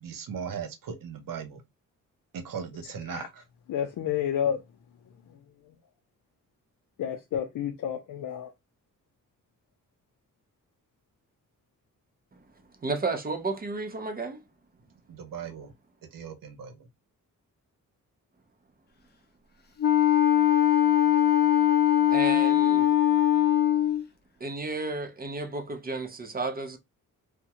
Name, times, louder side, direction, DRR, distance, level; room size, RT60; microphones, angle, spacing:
voice 1, 0.0-1.6 2.3-3.4 15.1-15.7 16.1-16.7, right 7 dB, 80° right, 0.8 m, -38 dB
voice 2, 3.7-4.6 7.0-8.5, left 9 dB, 80° left, 0.6 m, -30 dB
voice 3, 12.8-14.4 22.1-22.9 24.4-26.8, right 3 dB, 30° right, 0.5 m, -32 dB
Wind instrument woodwind instrument, 19.8-24.0, left 11 dB, 30° left, 0.5 m, -21 dB
3.5 x 2.1 x 2.9 m
wide cardioid pair, 140°, 33 cm